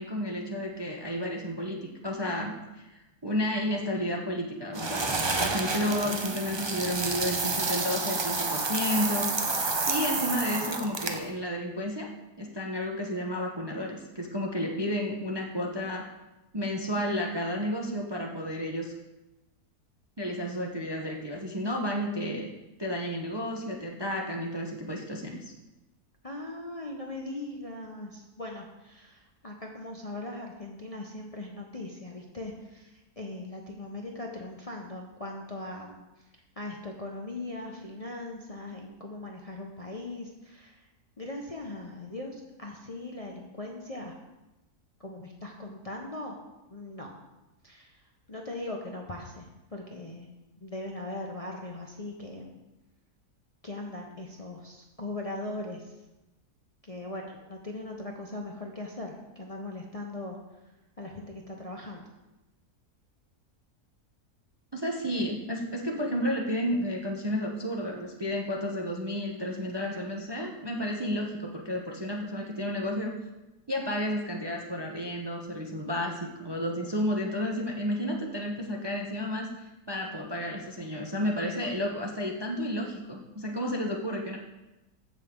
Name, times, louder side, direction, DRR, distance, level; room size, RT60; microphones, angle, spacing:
voice 1, 0.0-5.1 5.4-9.6 9.9-12.1 12.4-16.1 16.5-18.9 20.2-22.5 22.8-25.5 64.7-73.1 73.7-84.4, equal, 20° right, 0 dB, 0.7 m, -32 dB
sound 1, 4.7-11.3, right 3 dB, 40° right, 0.4 m, -29 dB
voice 2, 26.2-36.0 36.6-40.8 41.2-44.2 45.0-46.3 46.7-47.1 47.6-47.9 48.3-50.3 50.6-52.6 53.6-55.9 56.8-60.4 61.0-62.0, left 2 dB, 30° left, 0 dB, 0.8 m, -39 dB
15.0 x 6.3 x 3.8 m, 1.0 s
omnidirectional pair, 1.7 m